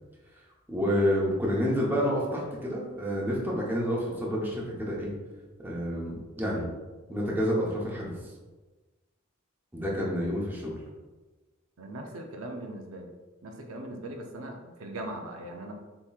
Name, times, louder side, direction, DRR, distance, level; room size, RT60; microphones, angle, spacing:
voice 1, 0.7-5.1 5.6-6.6 7.1-8.1 9.7-10.7, equal, 10° right, -4 dB, 0.9 m, -29 dB
voice 2, 11.8-13.1 13.4-15.7, right 1 dB, 80° right, 2 dB, 0.6 m, -40 dB
6.9 x 3.0 x 2.4 m, 1.2 s
head